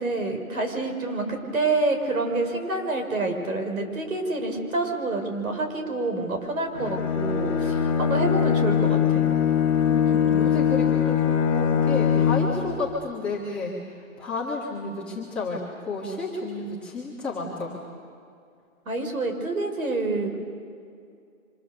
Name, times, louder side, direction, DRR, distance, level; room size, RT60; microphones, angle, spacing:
voice 1, 0.0-9.3 10.0-10.2 18.9-20.4, right 2 dB, 80° right, 4 dB, 5.9 m, -27 dB
Bowed string instrument, 6.7-12.7, left 8 dB, 25° left, 2.0 m, -22 dB
voice 2, 9.8-13.7 14.2-17.8, left 3 dB, 5° left, -9 dB, 1.2 m, -31 dB
29.5 x 26.0 x 6.9 m, 2.4 s
hypercardioid pair, 175°, 42 cm